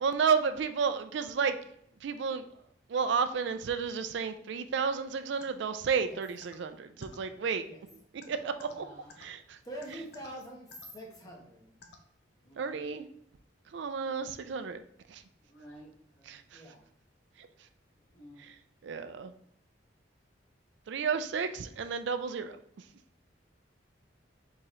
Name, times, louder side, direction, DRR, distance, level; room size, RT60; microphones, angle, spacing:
voice 1, 0.0-1.6 2.0-2.4 2.9-7.7 8.3-8.9 9.2-9.6 12.6-13.0 13.7-14.8 15.1-15.2 16.3-16.6 17.4-17.5 18.4-18.6 18.8-19.3 20.9-22.6, right 6 dB, 75° right, 9 dB, 0.4 m, -32 dB
sound 1, 5.4-5.5 6.4-6.6 7.0-7.2 8.2-8.7 9.1-9.2 9.8-10.3 10.7-10.9 11.8-12.0, left 4 dB, 60° left, 0.6 m, -51 dB
voice 2, 8.7-9.1 12.4-12.9 15.4-16.4 18.1-18.4, right 1 dB, 90° left, -3 dB, 1.3 m, -53 dB
voice 3, 9.6-11.8 16.5-16.8, right 1 dB, 20° left, -2 dB, 1.1 m, -45 dB
4.5 x 3.7 x 3.1 m, 0.73 s
head